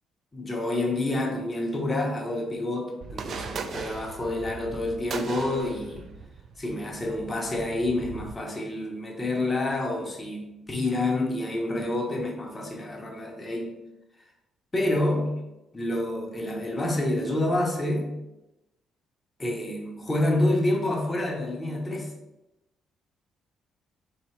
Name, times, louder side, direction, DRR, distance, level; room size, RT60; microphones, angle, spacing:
voice 1, 0.3-6.1 6.6-13.8 14.7-15.4 15.7-18.1 19.4-22.1, left 1 dB, 15° left, 1 dB, 0.7 m, -28 dB
sound 1, 3.0-8.3, right 5 dB, 45° right, 0.3 m, -39 dB
3.8 x 2.8 x 4.4 m, 0.94 s
cardioid pair, 155°, 0 cm